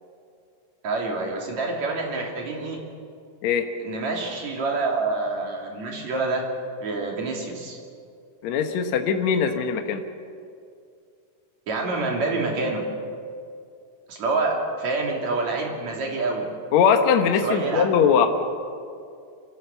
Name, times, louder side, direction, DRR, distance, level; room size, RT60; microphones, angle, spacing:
voice 1, 0.8-2.8 3.8-6.5 6.8-7.8 11.7-12.8 14.1-16.5 17.4-18.3, right 3 dB, 65° right, 0 dB, 4.1 m, -27 dB
voice 2, 8.4-10.0 16.7-18.3, left 7 dB, 70° left, 6 dB, 2.4 m, -21 dB
26.5 x 16.0 x 7.0 m, 2.4 s
omnidirectional pair, 3.4 m